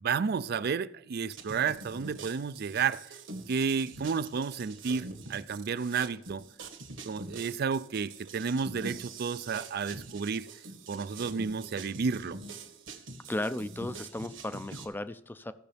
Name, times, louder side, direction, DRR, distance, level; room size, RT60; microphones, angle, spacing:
voice 1, 0.0-3.2 3.5-6.4 7.1-10.5 10.9-12.4, right 5 dB, 55° right, 0.4 m, -31 dB
sound 1, 1.3-14.9, right 3 dB, 75° right, 1.6 m, -45 dB
voice 2, 13.3-15.5, left 1 dB, 10° left, 0.5 m, -35 dB
16.0 x 6.6 x 3.4 m
head